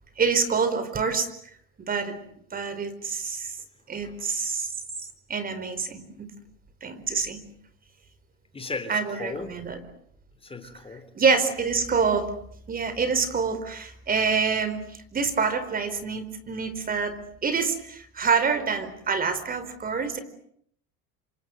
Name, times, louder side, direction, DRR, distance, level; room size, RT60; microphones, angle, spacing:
voice 1, 0.2-1.3 1.9-2.2 2.5-3.5 3.9-4.7 5.3-6.3 6.8-7.4 8.9-9.8 11.1-12.3 12.7-14.8 15.1-20.2, right 5 dB, 30° right, 12 dB, 4.7 m, -26 dB
voice 2, 8.5-9.5 10.4-11.1, left 3 dB, 20° left, 9 dB, 3.6 m, -36 dB
28.0 x 25.0 x 8.1 m, 0.68 s
supercardioid pair, 105°, 29 cm